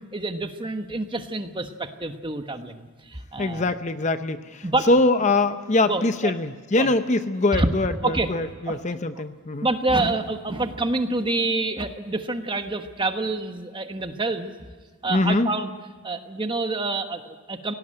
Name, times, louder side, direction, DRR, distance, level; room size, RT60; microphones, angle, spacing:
voice 1, 0.1-3.7 4.6-4.9 5.8-6.3 6.8-6.9 7.5-7.7 8.0-8.3 8.7-8.8 9.6-14.5 15.0-15.7 16.0-17.7, right 2 dB, 20° right, 7 dB, 1.2 m, -27 dB
voice 2, 3.4-9.7 15.1-15.5, left 2 dB, 30° left, 10 dB, 0.7 m, -23 dB
18.0 x 17.5 x 8.8 m, 1.5 s
head